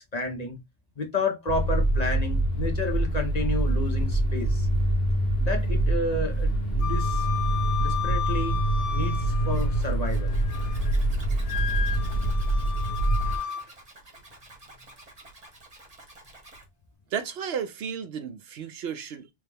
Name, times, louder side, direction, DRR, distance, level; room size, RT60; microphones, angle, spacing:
voice 1, 0.1-0.6 1.0-4.7 5.4-7.3 7.8-8.6 8.9-10.4 11.7-12.0 13.2-13.5, left 2 dB, 40° left, 0.9 m, -31 dB
sound 1, 1.5-13.4, right 1 dB, 55° left, 1.4 m, -25 dB
Wind instrument woodwind instrument, 6.8-9.8 10.2-10.9 11.4-13.6, left 9 dB, 80° left, 1.0 m, -33 dB
Zipper (clothing), 9.5-16.7, right 2 dB, 35° right, 1.4 m, -50 dB
voice 2, 17.1-19.3, right 7 dB, 70° right, 0.8 m, -33 dB
3.3 x 3.3 x 3.4 m
omnidirectional pair, 1.2 m